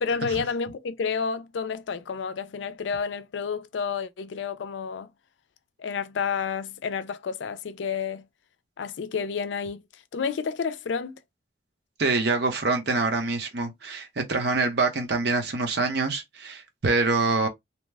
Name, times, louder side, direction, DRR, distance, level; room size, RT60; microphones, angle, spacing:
voice 1, 0.0-5.1 5.8-8.3 8.8-9.8 10.1-11.2, left 6 dB, 80° left, 0.4 m, -30 dB
voice 2, 12.0-17.5, right 3 dB, 60° right, 0.8 m, -25 dB
2.9 x 2.1 x 3.3 m
head